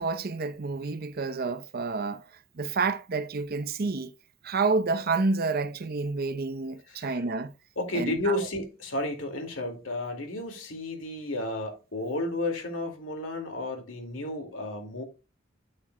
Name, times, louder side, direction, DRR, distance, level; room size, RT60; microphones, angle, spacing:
voice 1, 0.0-2.2 2.6-4.1 4.4-7.5 7.9-8.4, right 4 dB, 50° right, 0.7 m, -29 dB
voice 2, 6.9-7.2 7.8-15.0, left 2 dB, 85° left, 2.2 m, -32 dB
8.9 x 8.5 x 2.2 m
head